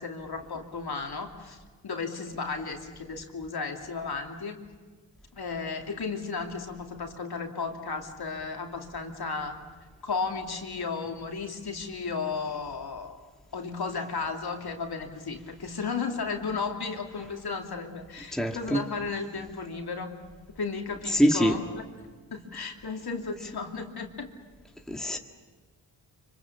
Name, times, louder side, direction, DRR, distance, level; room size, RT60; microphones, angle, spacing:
voice 1, 0.0-1.6 1.8-4.6 5.3-9.6 10.0-13.1 13.5-20.2 20.5-21.8 22.3-24.3, left 4 dB, 55° left, 3 dB, 2.9 m, -34 dB
voice 2, 18.3-18.8 21.1-21.6 24.9-25.2, equal, ahead, 3 dB, 1.8 m, -24 dB
25.0 x 24.5 x 7.3 m, 1.4 s
cardioid pair, 60°, 45 cm